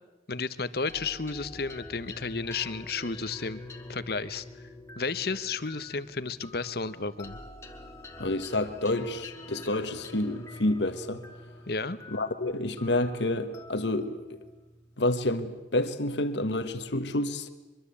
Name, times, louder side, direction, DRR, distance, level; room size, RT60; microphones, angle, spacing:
voice 1, 0.3-3.6 3.9-4.4 5.0-7.4 11.7-12.0, left 4 dB, 55° left, 1.1 m, -32 dB
sound 1, 0.9-15.6, left 1 dB, 15° left, 2.0 m, -47 dB
voice 2, 8.2-11.2 12.1-14.4 15.0-17.5, left 1 dB, 75° left, 1.5 m, -29 dB
24.0 x 23.0 x 8.5 m
head